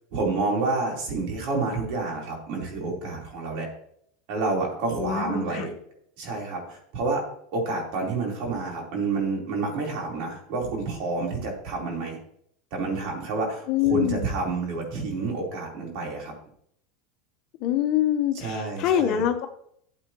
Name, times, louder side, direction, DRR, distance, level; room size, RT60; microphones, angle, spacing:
voice 1, 0.1-3.7 4.3-5.7 6.2-7.2 7.5-12.2 12.7-16.3 18.3-19.2, right 3 dB, 60° right, -1 dB, 3.9 m, -29 dB
voice 2, 5.0-5.7 13.7-14.3 17.6-19.5, left 10 dB, 55° left, 7 dB, 1.1 m, -24 dB
13.0 x 7.8 x 3.1 m, 0.70 s
supercardioid pair, 110°, 0 cm